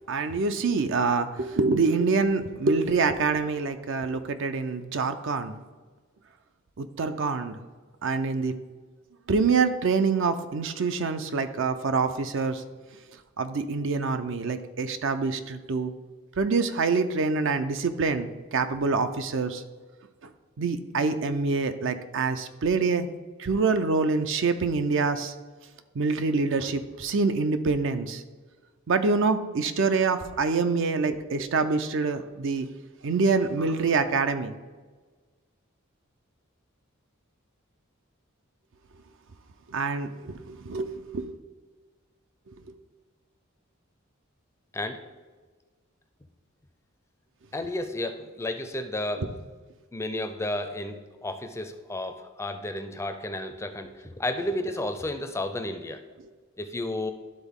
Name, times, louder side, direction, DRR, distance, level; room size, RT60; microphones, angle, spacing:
voice 1, 0.1-5.6 6.8-7.6 8.0-8.5 9.3-12.6 13.4-15.9 16.4-19.6 20.6-23.1 23.4-25.3 25.9-28.2 28.9-32.7 33.0-34.5 39.7-41.3 42.5-42.6, right 4 dB, 65° right, 9 dB, 0.5 m, -26 dB
voice 2, 44.7-45.0 47.5-49.3 49.9-56.0 56.6-57.1, left 1 dB, 15° left, 7 dB, 0.4 m, -32 dB
12.0 x 3.9 x 3.6 m, 1.4 s
head